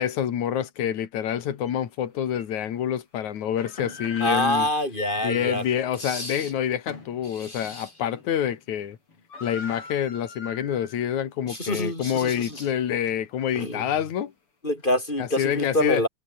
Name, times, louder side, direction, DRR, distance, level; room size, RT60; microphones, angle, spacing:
voice 1, 0.0-4.7 5.2-9.0 9.4-14.3 15.2-16.0, left 9 dB, 80° left, 3.4 m, -27 dB
sound 1, 1.7-1.8 2.3-2.4 3.4-7.2 7.6-7.8 8.1-8.6 8.8-8.9 9.1-11.1 11.5-11.6 12.2-13.5, left 3 dB, 45° left, 6.2 m, -39 dB
voice 2, 4.2-5.6 6.0-6.5 7.4-7.8 11.5-12.6 13.5-13.9 14.6-16.1, left 1 dB, 15° left, 5.3 m, -27 dB
omnidirectional pair, 3.4 m